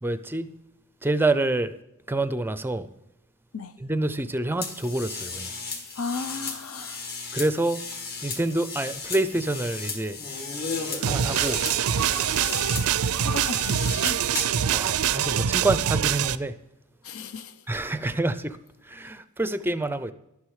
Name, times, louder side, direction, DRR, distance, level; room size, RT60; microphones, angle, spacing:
voice 1, 0.0-0.5 1.0-1.8 2.1-2.9 3.8-5.5 7.3-7.8 8.2-10.5 11.0-11.6 14.7-16.6 17.7-18.6 18.8-20.1, right 2 dB, 10° right, 0.5 m, -27 dB
sound 1, 4.6-14.6, left 4 dB, 45° left, 2.0 m, -35 dB
voice 2, 6.0-7.1 13.2-14.2 17.0-17.6, left 4 dB, 70° left, 0.7 m, -35 dB
sound 2, 11.0-16.4, right 8 dB, 80° right, 0.5 m, -24 dB
11.5 x 9.5 x 4.8 m
head